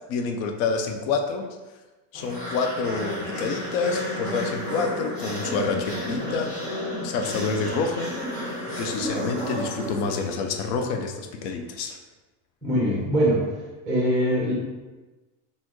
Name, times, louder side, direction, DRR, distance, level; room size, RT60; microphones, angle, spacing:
voice 1, 0.1-1.5 2.1-6.5 7.0-12.0, left 4 dB, 65° left, 4 dB, 0.6 m, -28 dB
sound 1, 2.1-10.6, equal, 45° left, 1.3 m, -32 dB
voice 2, 12.6-13.5 13.8-14.5, equal, ahead, -6 dB, 0.7 m, -22 dB
4.2 x 3.5 x 3.0 m, 1.2 s
cardioid pair, 180°, 48 cm